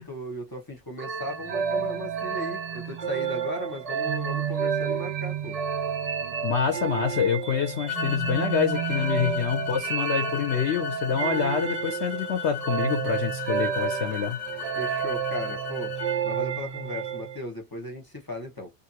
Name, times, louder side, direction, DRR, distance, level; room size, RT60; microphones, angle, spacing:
voice 1, 0.0-5.6 14.8-16.0 16.2-18.7, left 1 dB, 20° left, 0.9 m, -37 dB
sound 1, 1.0-17.4, right 7 dB, 70° right, 0.3 m, -30 dB
voice 2, 6.4-14.4, left 7 dB, 60° left, 0.9 m, -26 dB
sound 2, 7.9-16.2, left 11 dB, 90° left, 1.2 m, -36 dB
2.7 x 2.6 x 2.8 m
omnidirectional pair, 1.4 m